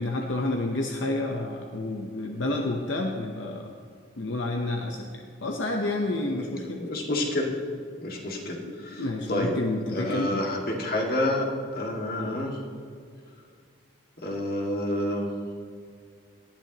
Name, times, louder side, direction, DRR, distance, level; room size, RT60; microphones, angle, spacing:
voice 1, 0.0-3.7 4.2-6.8 8.9-10.4 12.2-12.4, left 2 dB, 75° left, 2 dB, 0.8 m, -30 dB
voice 2, 6.3-7.5 8.0-9.6 9.9-11.5 11.7-12.6 14.2-15.3, left 1 dB, 50° left, 0 dB, 2.0 m, -29 dB
18.5 x 12.0 x 3.0 m, 2.2 s
head